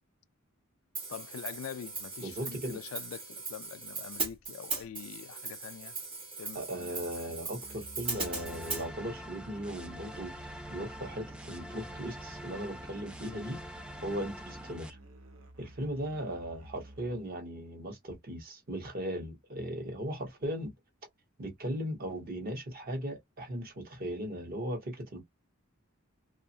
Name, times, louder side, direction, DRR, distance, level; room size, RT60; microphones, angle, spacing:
Hi-hat, 0.9-8.8, right 4 dB, 25° right, 1.1 m, -39 dB
voice 1, 1.1-6.0 6.4-7.4, left 8 dB, 75° left, 0.3 m, -44 dB
voice 2, 2.2-2.8 6.5-13.6 14.0-15.0 15.6-20.7 21.4-25.2, equal, 45° right, 0.9 m, -38 dB
Musical instrument, 7.6-17.4, right 1 dB, 75° right, 0.6 m, -52 dB
sound 1, 8.0-14.9, equal, 5° right, 0.3 m, -45 dB
2.6 x 2.3 x 2.6 m
head